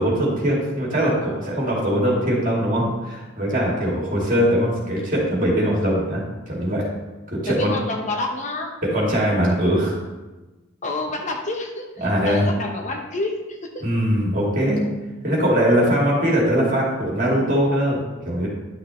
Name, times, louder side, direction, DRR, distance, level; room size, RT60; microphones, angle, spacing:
voice 1, 0.0-6.9 7.3-7.7 8.8-10.0 12.0-12.5 13.8-14.9 15.2-18.5, equal, 40° right, -4 dB, 2.3 m, -21 dB
voice 2, 7.5-8.7 10.8-13.8, left 2 dB, 35° left, 2 dB, 0.8 m, -28 dB
10.5 x 6.0 x 3.1 m, 1.1 s
head